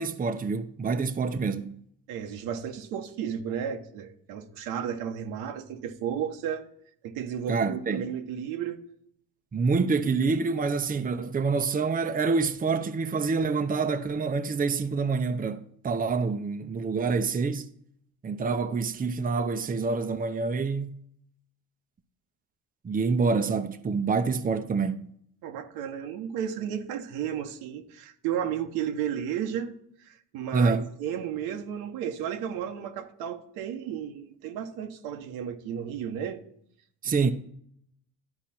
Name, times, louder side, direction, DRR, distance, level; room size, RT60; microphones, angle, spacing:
voice 1, 0.0-1.8 7.5-8.1 9.5-17.7 18.2-21.0 22.8-25.1 30.5-30.9 37.0-37.3, right 4 dB, 25° right, 0.7 m, -27 dB
voice 2, 2.1-6.6 7.0-8.8 25.4-29.7 30.0-36.4, right 9 dB, 90° right, 1.1 m, -33 dB
11.5 x 4.9 x 4.3 m
cardioid pair, 85°, 36 cm